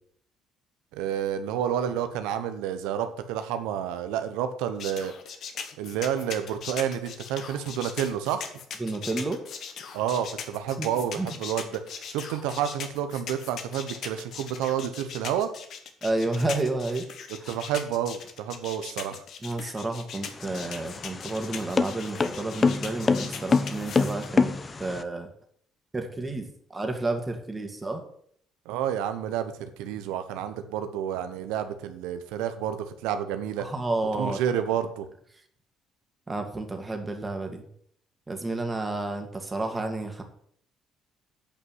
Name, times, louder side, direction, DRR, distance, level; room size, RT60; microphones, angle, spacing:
voice 1, 0.9-5.1 5.8-8.5 9.9-15.5 17.3-19.2 28.6-33.7 34.2-35.1, right 9 dB, 80° right, 10 dB, 1.0 m, -30 dB
sound 1, 4.8-24.3, left 7 dB, 65° left, 1.4 m, -39 dB
voice 2, 8.8-9.4 10.8-11.3 16.0-17.0 17.4-17.5 19.4-24.5 24.8-25.3 25.9-28.1 33.6-34.4 36.3-37.7 38.3-40.2, right 2 dB, 25° right, 4 dB, 2.3 m, -31 dB
sound 2, 20.3-25.0, left 4 dB, 35° left, 0.9 m, -26 dB
8.9 x 5.5 x 7.6 m, 0.64 s
supercardioid pair, 60°, 0 cm